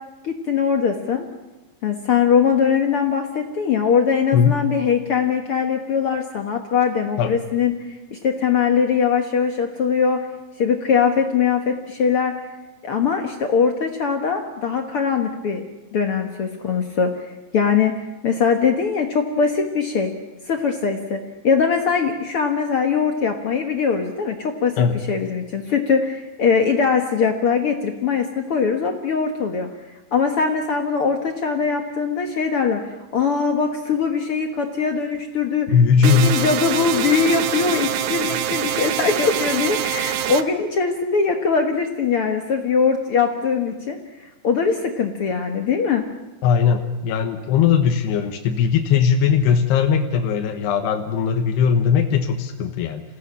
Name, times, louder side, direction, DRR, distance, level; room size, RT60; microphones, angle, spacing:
voice 1, 0.2-1.3 1.8-10.2 10.6-12.3 12.8-15.6 15.9-20.1 20.5-29.7 30.1-35.7 36.0-46.0, left 6 dB, 70° left, 4 dB, 1.3 m, -21 dB
voice 2, 35.7-36.4 46.4-53.0, left 7 dB, 85° left, 4 dB, 3.3 m, -19 dB
sound 1, 36.0-40.4, right 10 dB, 75° right, 1.8 m, -25 dB
27.0 x 17.0 x 8.6 m, 1.1 s
omnidirectional pair, 4.7 m